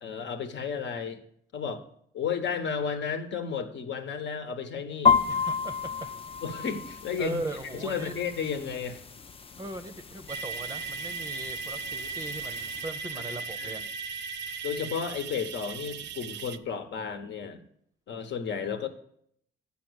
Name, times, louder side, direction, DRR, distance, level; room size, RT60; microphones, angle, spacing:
voice 1, 0.0-1.2 1.5-1.9 2.1-5.2 6.4-7.4 7.7-9.0 13.6-13.8 14.6-17.6 18.1-18.9, left 6 dB, 65° left, 7 dB, 1.1 m, -33 dB
sound 1, 5.1-12.9, left 6 dB, 30° left, 0.5 m, -31 dB
voice 2, 5.3-6.1 7.2-8.1 9.6-13.8, right 2 dB, 20° right, 7 dB, 0.6 m, -39 dB
sound 2, 10.3-16.6, right 5 dB, 65° right, 0.6 m, -37 dB
8.4 x 5.8 x 6.3 m, 0.68 s
cardioid pair, 90°, 20 cm